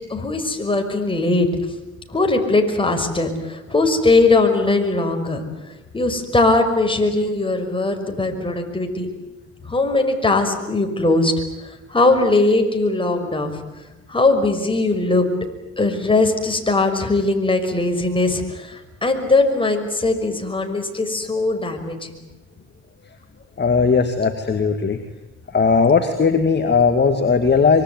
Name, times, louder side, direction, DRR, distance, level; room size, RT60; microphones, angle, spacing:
voice 1, 0.1-1.5 2.1-5.4 5.9-9.1 9.7-11.3 11.9-13.6 14.1-15.3 15.8-22.2, left 2 dB, 15° left, 4 dB, 5.9 m, -20 dB
voice 2, 23.6-25.0 25.5-27.8, left 5 dB, 35° left, 6 dB, 2.3 m, -17 dB
25.0 x 24.0 x 9.6 m, 1.0 s
cardioid pair, 90°, 30 cm